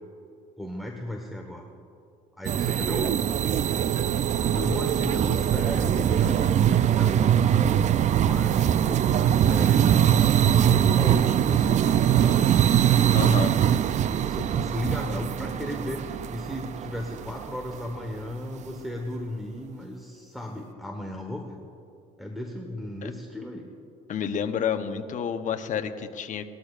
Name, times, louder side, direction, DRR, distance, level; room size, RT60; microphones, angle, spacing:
voice 1, 0.6-1.6 2.4-3.2 4.5-7.3 8.1-9.9 10.3-12.5 13.2-21.6 22.2-23.7, left 1 dB, ahead, 0 dB, 1.2 m, -35 dB
sound 1, 2.4-17.7, right 10 dB, 45° right, 0.4 m, -22 dB
voice 2, 13.1-13.5 23.0-23.1 24.1-26.4, left 7 dB, 50° left, 7 dB, 0.9 m, -29 dB
20.5 x 13.0 x 2.5 m, 2.6 s
cardioid pair, 110°, 17 cm